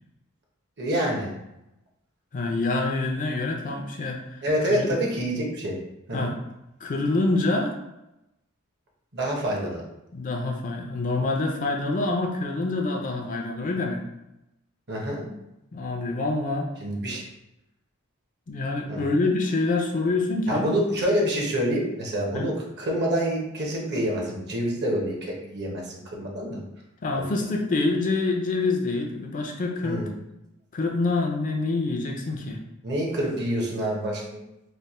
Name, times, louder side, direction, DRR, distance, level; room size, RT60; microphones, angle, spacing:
voice 1, 0.8-1.4 4.4-5.8 6.1-6.3 9.1-9.8 14.9-15.3 16.8-17.2 18.9-19.0 20.5-26.6 27.2-27.3 29.8-30.1 32.8-34.2, equal, 55° right, -1 dB, 0.9 m, -27 dB
voice 2, 2.3-4.4 4.7-4.9 6.1-6.3 6.8-7.7 10.1-14.0 15.7-16.7 18.5-20.7 22.3-22.5 27.0-30.1 30.7-32.6, left 3 dB, 40° left, 2 dB, 0.4 m, -26 dB
3.2 x 2.1 x 4.1 m, 0.90 s
head